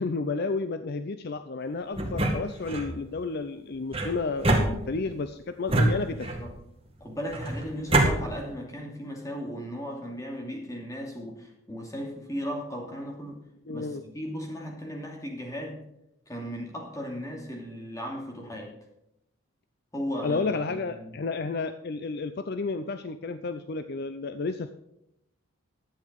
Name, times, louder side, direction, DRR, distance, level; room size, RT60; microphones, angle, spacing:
voice 1, 0.0-6.3 13.7-14.0 20.2-24.7, left 3 dB, 50° left, 10 dB, 0.5 m, -31 dB
sound 1, 1.9-2.9 3.9-5.2 5.7-6.6 7.3-8.1, right 1 dB, 25° right, 2.1 m, -25 dB
voice 2, 6.1-6.5 7.0-13.4 13.7-15.8 16.3-18.7 19.9-21.2, equal, 15° left, 0 dB, 2.6 m, -36 dB
11.5 x 8.6 x 5.2 m, 0.82 s
head